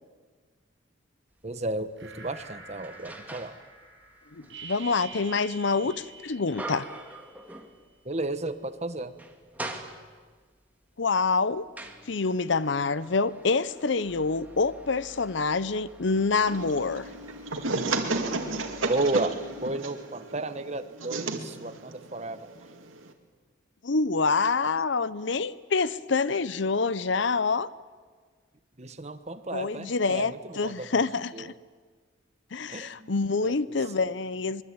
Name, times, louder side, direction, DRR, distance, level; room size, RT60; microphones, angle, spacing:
sound 1, 1.4-1.5 2.1-3.7 4.0-8.2 8.5-8.6 9.0-10.4 11.1-19.8, right 1 dB, 10° right, 1.9 m, -45 dB
voice 1, 1.4-3.6 8.0-9.1 18.9-22.5 28.8-31.0 31.3-31.5 32.7-33.1 33.4-33.6 34.0-34.1, right 2 dB, 35° right, 1.2 m, -33 dB
sound 2, 2.0-7.4, right 4 dB, 65° right, 6.6 m, -46 dB
voice 2, 4.3-6.9 11.0-11.7 12.1-17.0 23.8-27.7 29.5-31.5 32.5-34.6, left 4 dB, 65° left, 0.7 m, -26 dB
sound 3, 16.5-23.1, right 3 dB, 85° right, 2.3 m, -33 dB
24.0 x 22.0 x 8.9 m
head